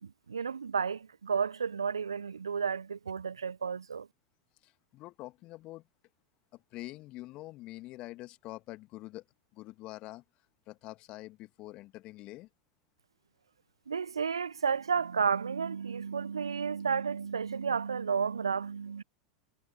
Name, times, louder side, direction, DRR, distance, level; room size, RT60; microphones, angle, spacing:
voice 1, 0.3-4.1 13.9-19.0, right 6 dB, 75° right, 0.6 m, -32 dB
voice 2, 4.6-5.9 6.5-9.2 9.5-10.2 10.7-12.5, left 18 dB, 40° left, 2.3 m, -45 dB
figure-of-eight pair, 85°, 3 cm